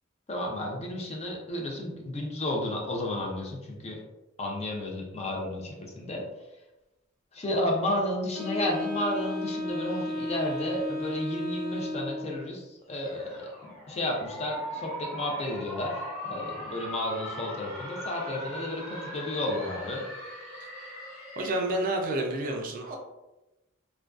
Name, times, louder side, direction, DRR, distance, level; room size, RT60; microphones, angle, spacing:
voice 1, 0.3-4.0 4.4-6.3 7.3-20.0, left 1 dB, 30° left, 0 dB, 0.4 m, -32 dB
Wind instrument woodwind instrument, 8.3-12.4, left 1 dB, ahead, 0.9 m, -33 dB
sound 1, 13.0-21.8, equal, 80° left, 1.0 m, -40 dB
voice 2, 21.4-23.0, right 1 dB, 45° right, 2 dB, 0.4 m, -29 dB
2.4 x 2.2 x 2.3 m, 1.0 s
head